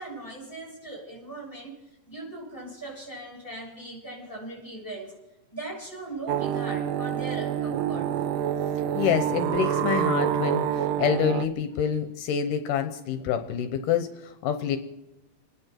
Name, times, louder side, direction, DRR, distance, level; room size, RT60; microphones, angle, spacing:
voice 1, 0.0-5.2 5.5-8.2, right 2 dB, 5° left, -4 dB, 6.8 m, -39 dB
sound 1, 6.3-11.5, right 10 dB, 85° right, 2.3 m, -27 dB
voice 2, 8.9-14.8, left 8 dB, 80° left, 7 dB, 2.5 m, -27 dB
28.0 x 10.5 x 4.5 m, 0.97 s
omnidirectional pair, 3.8 m